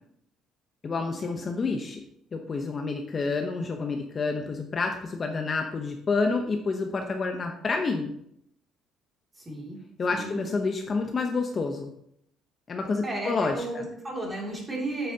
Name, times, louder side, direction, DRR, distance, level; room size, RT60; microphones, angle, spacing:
voice 1, 0.8-2.0 2.3-8.1 10.0-11.9 12.7-13.9, left 4 dB, 30° left, 3 dB, 0.7 m, -29 dB
voice 2, 9.4-9.8 10.1-10.4 13.0-15.1, right 1 dB, 15° right, -2 dB, 2.6 m, -33 dB
8.8 x 7.8 x 2.8 m, 0.72 s
cardioid pair, 140°, 0 cm